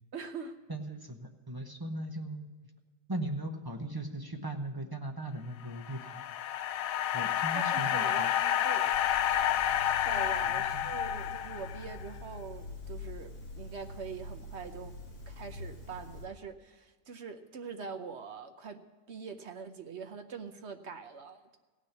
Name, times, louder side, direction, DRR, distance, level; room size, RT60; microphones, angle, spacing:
voice 1, 0.1-0.6 7.5-8.9 10.0-15.0 15.3-18.8 19.1-21.6, right 5 dB, 55° right, 7 dB, 0.9 m, -43 dB
voice 2, 0.7-2.5 3.1-6.4 7.1-8.3 10.4-10.9, right 1 dB, 20° right, 3 dB, 0.7 m, -38 dB
sound 1, 5.6-12.0, left 11 dB, 65° left, 0.9 m, -30 dB
sound 2, 8.9-16.3, left 2 dB, 40° left, 2.3 m, -45 dB
17.0 x 6.3 x 8.1 m, 1.4 s
omnidirectional pair, 1.7 m